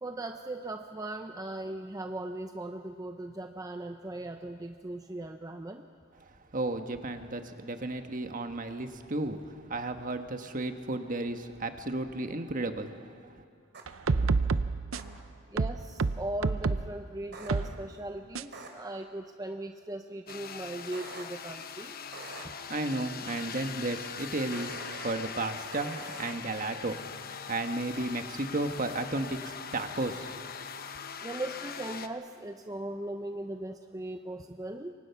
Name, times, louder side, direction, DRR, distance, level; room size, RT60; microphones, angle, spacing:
voice 1, 0.0-5.8 15.5-21.9 22.4-22.5 31.2-34.9, right 1 dB, 20° right, 6 dB, 0.7 m, -38 dB
voice 2, 6.5-13.4 22.3-30.7, right 2 dB, 40° right, 7 dB, 1.4 m, -34 dB
sound 1, 13.7-13.8 14.9-15.0 17.3-17.5 18.5-18.7 20.9-21.2 22.1-22.4 24.5-25.1 25.7-26.3, right 3 dB, 60° right, 3.1 m, -44 dB
sound 2, 13.9-15.2 15.6-16.9 17.5-17.7 18.3-18.4, right 4 dB, 85° right, 0.7 m, -28 dB
sound 3, 20.3-32.1, left 7 dB, 50° left, 1.0 m, -42 dB
27.5 x 24.0 x 5.9 m, 2.3 s
head